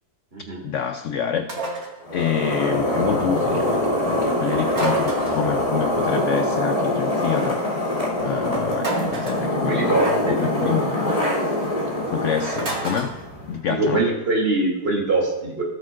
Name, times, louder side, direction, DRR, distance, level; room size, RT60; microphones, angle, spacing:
voice 1, 0.6-1.5 2.1-3.8 4.1-7.6 8.2-11.2 12.1-13.2 13.5-14.1, left 8 dB, 70° left, 8 dB, 0.7 m, -27 dB
sound 1, 1.5-2.0 4.7-5.5 8.8-9.5 12.6-13.1, right 3 dB, 60° right, 2.4 m, -29 dB
sound 2, 2.0-13.6, left 1 dB, 25° left, 3.6 m, -24 dB
voice 2, 9.7-10.4 13.6-15.6, right 2 dB, 35° right, -2 dB, 2.9 m, -23 dB
17.5 x 8.1 x 2.5 m, 1.0 s
omnidirectional pair, 1.7 m